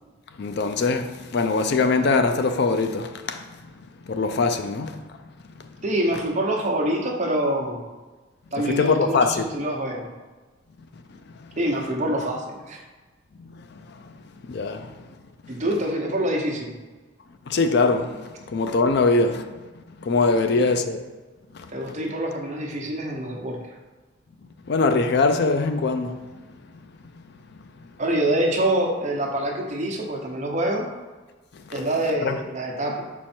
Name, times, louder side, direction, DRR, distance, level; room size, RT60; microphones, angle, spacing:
voice 1, 0.4-3.6 4.1-5.0 5.6-5.7 8.6-9.5 13.4-14.0 14.5-15.1 17.5-19.5 20.0-21.0 21.5-21.7 24.7-26.2 31.5-31.8 32.2-32.4, left 3 dB, 55° left, 0.4 m, -23 dB
voice 2, 5.8-7.8 8.5-10.1 11.6-12.8 15.5-16.7 20.3-20.5 21.7-23.6 28.0-30.9 31.7-33.0, right 1 dB, 35° right, 0.9 m, -25 dB
5.5 x 4.5 x 4.4 m
head